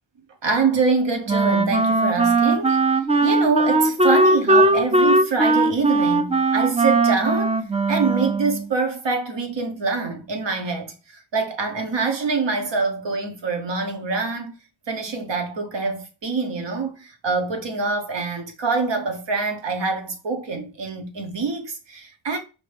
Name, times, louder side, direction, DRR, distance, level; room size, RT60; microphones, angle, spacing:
voice 1, 0.4-2.8 3.2-7.6 7.9-10.9 11.3-14.5 14.9-22.4, right 4 dB, 65° right, 1.2 m, -25 dB
Wind instrument woodwind instrument, 1.3-8.7, right 2 dB, 15° right, 0.4 m, -19 dB
5.0 x 2.7 x 3.4 m
wide cardioid pair, 85°, 46 cm